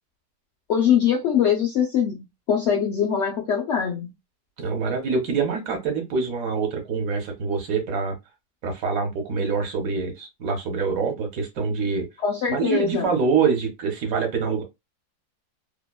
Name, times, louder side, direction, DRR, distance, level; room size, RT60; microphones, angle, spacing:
voice 1, 0.7-4.1 12.2-13.1, left 8 dB, 70° left, 0.6 m, -22 dB
voice 2, 4.6-8.1 8.6-12.1 12.5-14.6, right 5 dB, 65° right, 1.2 m, -25 dB
2.8 x 2.1 x 2.2 m
omnidirectional pair, 1.7 m